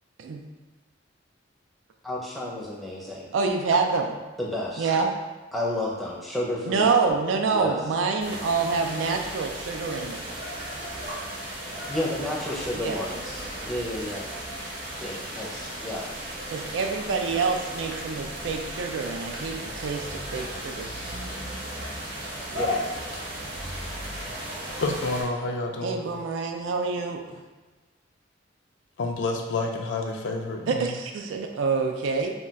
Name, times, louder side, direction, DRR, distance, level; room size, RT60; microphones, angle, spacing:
voice 1, 2.0-3.3 4.4-4.9 5.5-6.9 7.5-7.8 11.9-14.2 15.0-16.1 22.5-23.0, left 1 dB, ahead, -5 dB, 0.5 m, -31 dB
voice 2, 3.3-4.2 4.8-5.1 6.6-10.2 12.8-13.0 16.5-20.9 25.8-27.2 30.7-32.3, right 4 dB, 85° right, 4 dB, 0.4 m, -26 dB
sound 1, 8.2-25.2, equal, 50° right, 0.9 m, -35 dB
voice 3, 24.8-26.0 29.0-30.9, left 3 dB, 65° left, 2 dB, 0.4 m, -29 dB
2.3 x 2.2 x 3.9 m, 1.2 s
head